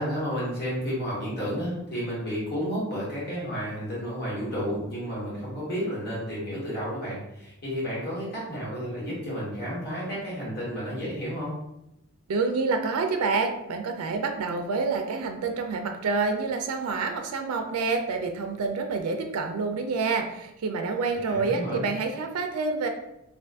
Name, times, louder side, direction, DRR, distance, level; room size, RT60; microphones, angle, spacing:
voice 1, 0.0-11.5 21.1-21.9, equal, 45° left, -6 dB, 1.3 m, -31 dB
voice 2, 12.3-22.9, right 4 dB, 80° right, 5 dB, 0.4 m, -28 dB
2.5 x 2.5 x 3.4 m, 0.85 s
head